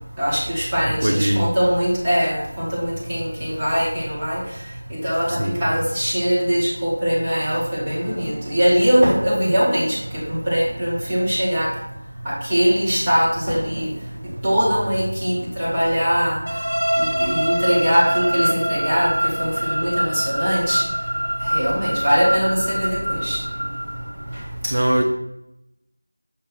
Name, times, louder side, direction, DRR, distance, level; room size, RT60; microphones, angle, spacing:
voice 1, 0.2-4.6 4.9-11.7 12.2-13.9 14.4-16.4 17.0-20.8 21.4-23.4 24.3-25.0, equal, 10° right, 0.8 m, -21 dB
voice 2, 1.0-1.5 5.3-5.5 24.7-25.0, right 1 dB, 45° right, 0.5 m, -20 dB
sound 1, 16.5-24.3, equal, 85° right, 0.9 m, -24 dB
6.6 x 2.7 x 5.6 m
figure-of-eight pair, 180°, 0 cm